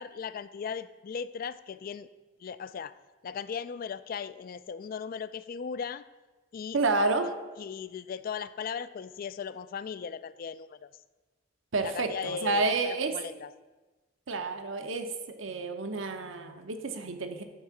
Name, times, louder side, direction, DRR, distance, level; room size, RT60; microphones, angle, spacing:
voice 1, 0.0-2.1 2.4-2.9 3.2-6.0 6.5-6.8 7.6-10.9 11.8-13.5, left 6 dB, 45° left, 15 dB, 0.3 m, -37 dB
voice 2, 6.7-7.3 11.7-13.1 14.3-15.1 15.4-17.4, right 3 dB, 75° right, 7 dB, 0.8 m, -29 dB
9.4 x 3.7 x 7.0 m, 1.2 s
head